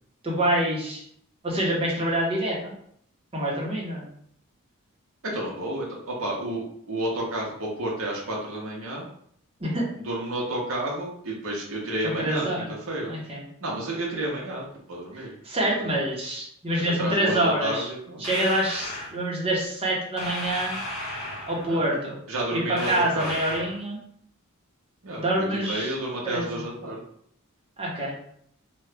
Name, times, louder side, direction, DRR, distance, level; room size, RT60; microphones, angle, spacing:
voice 1, 0.2-1.0 1.4-2.7 3.3-4.1 9.6-9.8 12.0-12.7 13.1-13.4 15.1-17.9 18.2-20.8 21.5-22.2 22.5-24.0 25.2-25.9 26.2-26.5 27.8-28.1, right 1 dB, 25° right, -4 dB, 0.8 m, -26 dB
voice 2, 5.2-9.1 10.0-13.1 13.6-15.3 15.7-15.9 16.8-18.3 21.7-21.8 22.3-23.3 25.0-27.0, right 1 dB, 60° right, -3 dB, 0.7 m, -31 dB
sound 1, 18.2-19.1 20.2-21.7 22.8-23.8, left 1 dB, 85° left, 1.5 m, -34 dB
2.9 x 2.3 x 3.3 m, 0.66 s
head